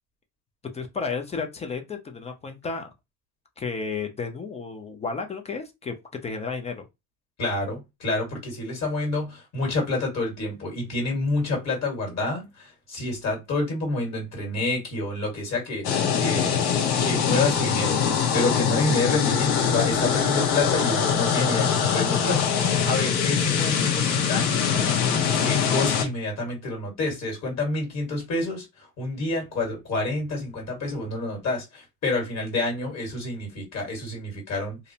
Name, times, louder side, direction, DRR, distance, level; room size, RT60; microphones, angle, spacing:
voice 1, 0.7-2.9 3.6-5.9 6.2-6.9, left 4 dB, 15° left, 0.3 m, -32 dB
voice 2, 7.4-24.6 25.3-34.8, left 2 dB, 40° left, 1.5 m, -28 dB
sound 1, 15.8-26.0, left 7 dB, 60° left, 0.9 m, -23 dB
2.5 x 2.0 x 2.7 m
supercardioid pair, 100°, 42 cm